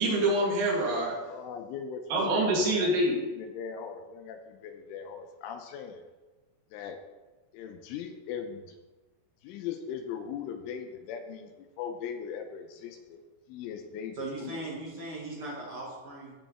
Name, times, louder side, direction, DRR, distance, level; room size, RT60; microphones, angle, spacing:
voice 1, 0.0-1.1 2.1-3.2, right 1 dB, 80° right, -6 dB, 5.8 m, -25 dB
voice 2, 1.3-2.9 3.3-6.0 6.7-7.0 7.5-8.8 9.4-13.2 13.5-14.6, left 7 dB, 85° left, 6 dB, 3.0 m, -39 dB
voice 3, 14.1-16.3, right 2 dB, 60° right, -5 dB, 1.4 m, -38 dB
15.5 x 7.1 x 3.6 m, 1.2 s
omnidirectional pair, 5.9 m